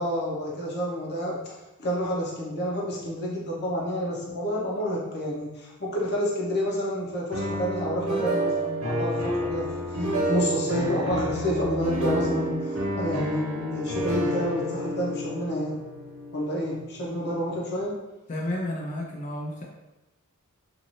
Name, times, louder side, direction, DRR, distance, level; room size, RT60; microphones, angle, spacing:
voice 1, 0.0-15.8 16.3-17.9, equal, 50° left, -4 dB, 0.8 m, -29 dB
sound 1, 7.3-17.2, right 1 dB, 70° right, 0.9 m, -29 dB
voice 2, 18.3-19.6, left 1 dB, 35° left, -2 dB, 0.4 m, -31 dB
2.6 x 2.5 x 3.1 m, 1.0 s
head